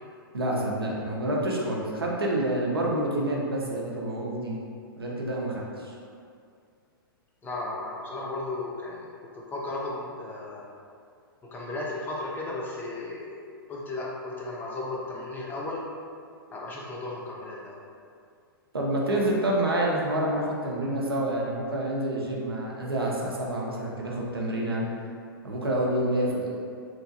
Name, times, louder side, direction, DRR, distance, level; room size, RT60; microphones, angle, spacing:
voice 1, 0.3-4.5 5.0-5.9 18.7-24.8 25.4-26.5, right 1 dB, 80° right, -3 dB, 0.6 m, -28 dB
voice 2, 7.4-10.7 11.4-13.4 13.7-15.9 16.5-17.8, left 2 dB, 15° left, -4 dB, 0.5 m, -35 dB
3.0 x 2.6 x 2.5 m, 2.3 s
figure-of-eight pair, 110°, 12 cm